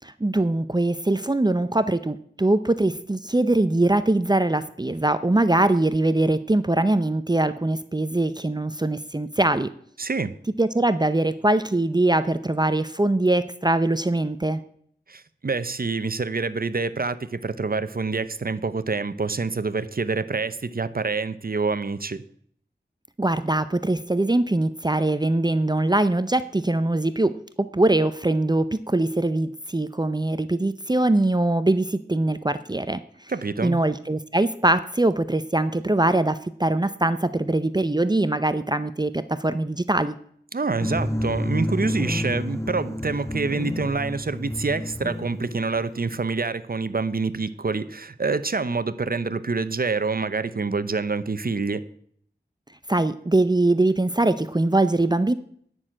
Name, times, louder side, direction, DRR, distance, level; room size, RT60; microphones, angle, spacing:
voice 1, 0.0-9.7 10.6-14.6 23.2-33.3 33.6-40.2 52.9-55.3, right 2 dB, 25° right, 12 dB, 0.6 m, -22 dB
voice 2, 10.0-10.4 15.1-22.2 33.3-33.8 40.5-51.9, right 4 dB, 55° right, 14 dB, 0.8 m, -27 dB
sound 1, 40.8-46.2, left 1 dB, 15° left, 1.0 m, -30 dB
9.9 x 6.3 x 8.9 m, 0.62 s
wide cardioid pair, 50°, 18 cm